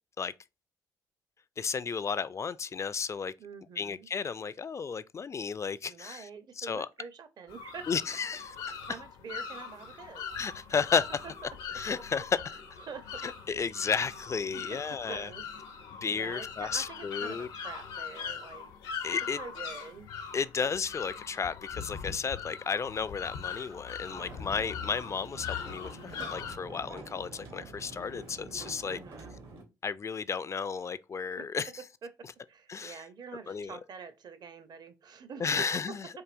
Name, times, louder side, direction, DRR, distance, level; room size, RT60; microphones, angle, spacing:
voice 1, 1.6-3.3 3.8-6.3 6.6-6.9 7.9-8.8 10.3-11.2 11.7-12.4 13.2-15.3 15.9-17.5 19.0-19.4 20.3-29.0 29.8-31.7 32.7-33.0 33.5-33.8 35.4-36.1, left 6 dB, 35° left, 0.3 m, -33 dB
voice 2, 3.4-4.1 5.8-7.9 8.6-10.6 11.9-12.0 12.8-13.2 14.5-15.5 16.1-18.7 19.4-20.1 28.8-29.4 31.4-31.5 32.0-32.1 32.5-36.0, right 5 dB, 50° right, 0.7 m, -46 dB
sound 1, 7.5-26.6, left 7 dB, 80° left, 0.7 m, -41 dB
sound 2, 24.1-29.6, right 2 dB, 70° right, 1.1 m, -47 dB
4.6 x 2.7 x 2.5 m
hypercardioid pair, 55°, 9 cm